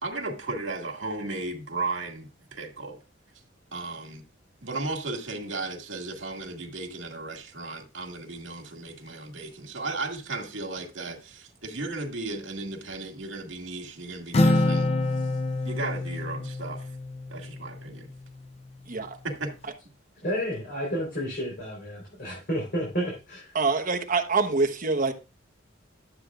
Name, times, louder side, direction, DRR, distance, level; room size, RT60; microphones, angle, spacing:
voice 1, 0.0-3.0 3.7-4.2 4.6-14.9 15.6-16.9 17.3-18.1 19.2-19.5, right 2 dB, 75° right, 1.9 m, -35 dB
Acoustic guitar, 14.3-18.0, left 2 dB, 30° left, 0.5 m, -26 dB
voice 2, 18.9-19.2 23.5-25.1, right 4 dB, 45° right, 1.1 m, -25 dB
voice 3, 20.2-23.5, equal, 50° left, 3.8 m, -31 dB
12.0 x 8.0 x 2.4 m
head